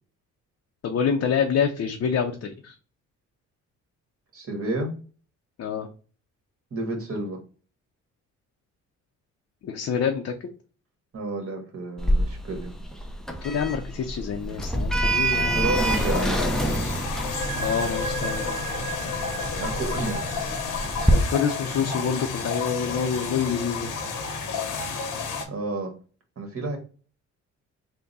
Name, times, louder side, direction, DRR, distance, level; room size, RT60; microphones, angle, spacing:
voice 1, 0.8-2.7 5.6-5.9 9.6-10.5 13.4-15.7 17.6-18.6 21.1-23.9, left 7 dB, 50° left, 3 dB, 0.6 m, -27 dB
voice 2, 4.3-4.9 6.7-7.4 11.1-12.7 15.5-16.4 19.6-20.2 25.5-25.9 26.4-26.8, right 2 dB, 50° right, 3 dB, 1.5 m, -30 dB
Sliding door, 12.0-21.1, right 1 dB, ahead, 0.5 m, -27 dB
sound 1, 15.8-25.5, left 5 dB, 90° left, 0.9 m, -31 dB
sound 2, 17.1-24.6, right 4 dB, 75° right, 1.0 m, -38 dB
3.5 x 2.2 x 4.0 m, 0.38 s
cardioid pair, 90°, 30 cm